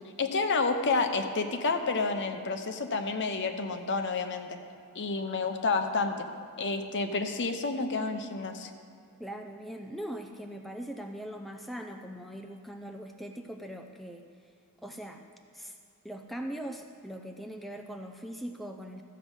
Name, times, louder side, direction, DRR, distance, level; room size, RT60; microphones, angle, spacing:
voice 1, 0.2-4.6 4.9-6.3 6.6-8.7, left 3 dB, 55° left, 7 dB, 0.8 m, -29 dB
voice 2, 9.2-14.2 14.8-15.2 15.5-15.7 16.0-19.0, equal, ahead, 3 dB, 0.4 m, -41 dB
13.5 x 7.6 x 5.4 m, 2.4 s
head